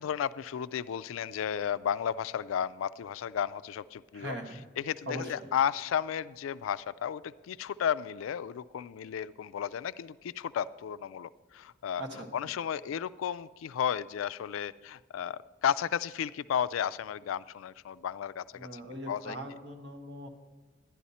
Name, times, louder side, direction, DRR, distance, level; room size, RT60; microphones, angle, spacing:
voice 1, 0.0-4.3 4.8-12.0 12.3-18.8 19.1-19.4, left 8 dB, 90° left, 17 dB, 0.3 m, -33 dB
voice 2, 4.1-4.6 5.1-5.5 12.0-12.3 18.5-20.3, right 1 dB, 60° right, 3 dB, 1.3 m, -40 dB
11.0 x 11.0 x 4.2 m, 1.3 s
head